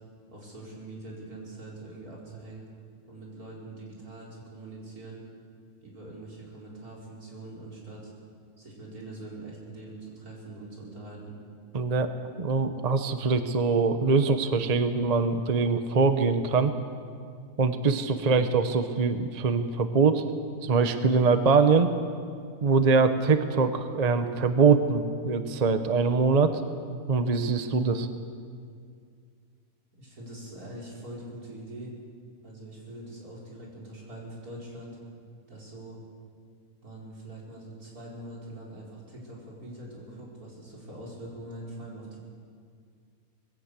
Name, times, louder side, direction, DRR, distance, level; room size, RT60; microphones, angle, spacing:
voice 1, 0.3-2.7 3.1-5.2 5.8-8.1 8.6-11.4 30.0-32.0 32.4-35.0 35.5-36.0 36.8-42.2, right 1 dB, 80° right, -4 dB, 5.2 m, -43 dB
voice 2, 11.7-12.1 12.4-16.7 17.6-20.2 20.6-21.9 22.6-26.6 27.1-28.1, right 4 dB, 30° right, 9 dB, 0.9 m, -23 dB
20.5 x 16.5 x 8.2 m, 2.2 s
omnidirectional pair, 1.5 m